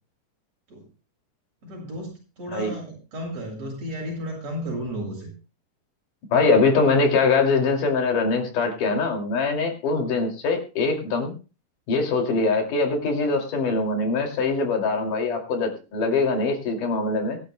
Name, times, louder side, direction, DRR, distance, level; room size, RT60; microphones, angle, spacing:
voice 1, 1.6-5.3, equal, 55° right, -1 dB, 8.6 m, -33 dB
voice 2, 6.3-11.3 11.9-17.4, left 3 dB, 80° left, 3 dB, 4.2 m, -22 dB
23.5 x 11.5 x 2.2 m, 0.33 s
omnidirectional pair, 3.7 m